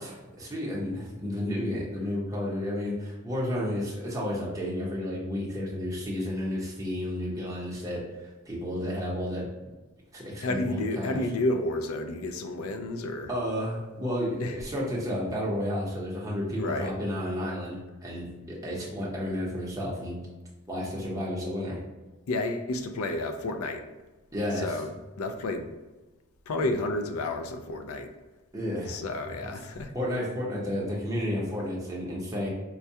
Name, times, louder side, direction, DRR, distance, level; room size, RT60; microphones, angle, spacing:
voice 1, 0.0-9.4 10.1-11.2 13.3-20.2 20.7-21.8 24.3-24.7 28.5-29.0 29.4-29.5 29.9-32.5, left 1 dB, 15° right, -5 dB, 0.8 m, -32 dB
voice 2, 10.4-13.3 14.4-14.6 16.6-16.9 22.3-23.9 24.6-25.7 26.5-28.1 28.9-29.9, left 2 dB, 70° left, 6 dB, 0.4 m, -31 dB
4.4 x 2.2 x 2.7 m, 1.1 s
head